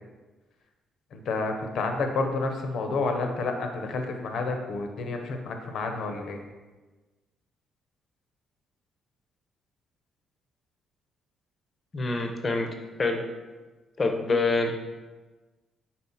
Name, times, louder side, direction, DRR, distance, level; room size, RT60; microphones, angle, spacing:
voice 1, 1.1-6.4, left 3 dB, 65° left, 5 dB, 0.8 m, -30 dB
voice 2, 11.9-13.2 14.0-14.7, left 3 dB, 30° left, 4 dB, 0.7 m, -26 dB
4.2 x 4.2 x 5.6 m, 1.2 s
cardioid pair, 140°, 0 cm